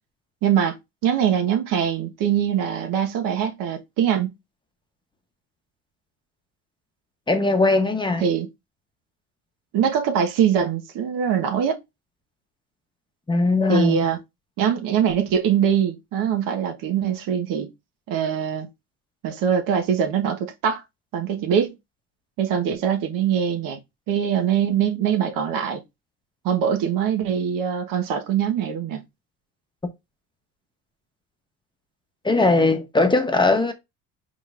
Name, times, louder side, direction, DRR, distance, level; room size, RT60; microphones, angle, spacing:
voice 1, 0.4-0.8 1.0-4.3 8.2-8.5 9.7-11.8 13.7-14.2 14.6-17.7 18.1-18.7 19.2-20.8 21.1-21.7 22.4-23.8 24.1-25.8 26.4-29.0, right 8 dB, 75° right, 1.2 m, -22 dB
voice 2, 7.3-8.2 13.3-14.0 32.2-33.7, left 3 dB, 15° left, 0.9 m, -19 dB
5.1 x 3.8 x 2.5 m
cardioid pair, 110°, 34 cm